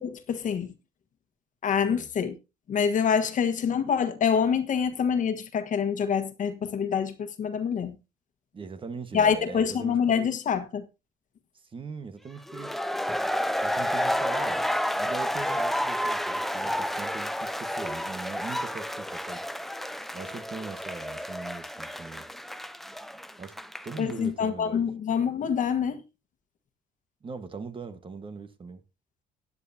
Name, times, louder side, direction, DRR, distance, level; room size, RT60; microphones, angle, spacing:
voice 1, 0.0-0.7 1.6-2.4 2.7-8.0 9.1-10.8 24.0-26.0, left 7 dB, 50° left, 1.5 m, -26 dB
voice 2, 8.5-10.3 11.7-12.8 13.6-14.6 15.0-19.4 20.1-22.3 23.4-23.5 23.8-24.9 27.2-28.8, right 4 dB, 30° right, 1.5 m, -40 dB
sound 1, 12.5-24.1, equal, ahead, 0.6 m, -30 dB
16.0 x 9.7 x 2.8 m
cardioid pair, 110°, 17 cm